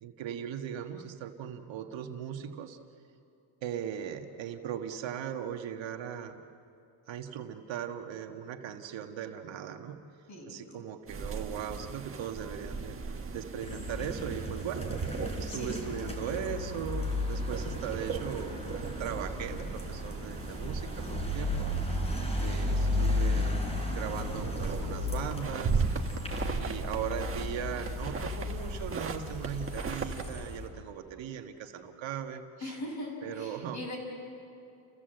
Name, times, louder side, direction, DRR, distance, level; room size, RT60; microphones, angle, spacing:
voice 1, 0.0-2.8 3.6-6.4 7.1-10.0 10.5-13.0 13.3-21.7 22.4-25.8 26.5-32.7 33.2-33.8, right 9 dB, 65° right, 5 dB, 1.5 m, -39 dB
voice 2, 10.3-10.7 15.5-16.1 32.6-34.0, left 1 dB, 35° left, 0 dB, 6.8 m, -40 dB
sound 1, 11.1-30.3, right 4 dB, 25° right, 1.5 m, -38 dB
sound 2, 13.6-30.7, left 2 dB, 10° left, 4.2 m, -34 dB
30.0 x 16.0 x 7.8 m, 2.6 s
cardioid pair, 120°, 48 cm